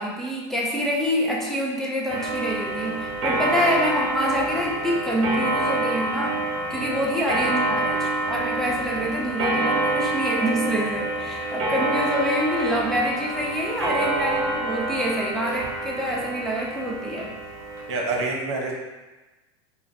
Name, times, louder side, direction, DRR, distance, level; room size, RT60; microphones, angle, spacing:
voice 1, 0.0-17.4, equal, ahead, -4 dB, 0.4 m, -26 dB
Clock, 2.1-18.2, right 2 dB, 40° right, 1.0 m, -27 dB
voice 2, 17.9-18.7, right 3 dB, 70° right, 0 dB, 0.8 m, -27 dB
5.4 x 2.2 x 2.6 m, 1.2 s
supercardioid pair, 135°, 16 cm